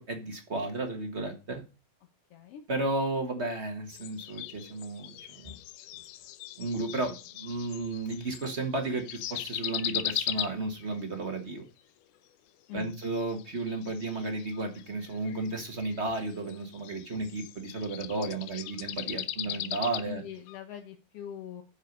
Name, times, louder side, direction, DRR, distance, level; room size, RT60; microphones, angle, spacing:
voice 1, 0.0-1.6 2.7-5.5 6.6-11.6 12.7-20.2, right 2 dB, 40° right, 4 dB, 0.9 m, -33 dB
voice 2, 2.3-2.6 12.7-12.9 19.4-19.7 20.0-21.6, left 10 dB, 65° left, 5 dB, 1.6 m, -42 dB
sound 1, 3.9-8.5 8.8-11.0 12.9-20.0 20.5-20.6, left 14 dB, 90° left, 2.2 m, -38 dB
7.6 x 6.6 x 5.3 m, 0.30 s
omnidirectional pair, 3.5 m